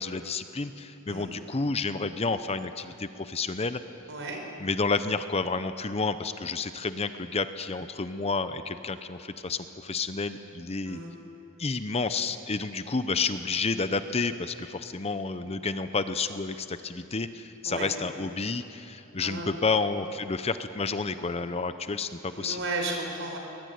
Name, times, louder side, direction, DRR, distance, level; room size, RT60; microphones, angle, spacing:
voice 1, 0.0-3.8 4.6-11.0 11.6-22.6, left 4 dB, 30° left, 11 dB, 0.7 m, -30 dB
voice 2, 4.1-4.4 10.9-11.1 17.6-17.9 19.2-19.5 22.2-23.4, right 2 dB, 60° right, 2 dB, 5.0 m, -34 dB
22.5 x 21.0 x 9.4 m, 3.0 s
head